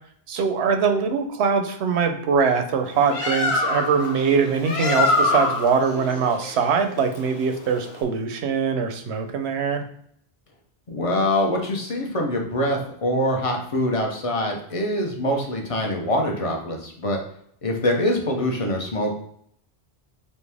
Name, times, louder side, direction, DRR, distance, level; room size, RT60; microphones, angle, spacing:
voice 1, 0.3-9.8, right 5 dB, 85° right, 6 dB, 0.9 m, -22 dB
Bird, 2.9-8.0, left 2 dB, 75° left, 1.0 m, -25 dB
voice 2, 10.9-17.2 17.6-19.1, left 1 dB, 35° left, 1 dB, 0.7 m, -24 dB
4.2 x 2.7 x 3.4 m, 0.67 s
omnidirectional pair, 1.1 m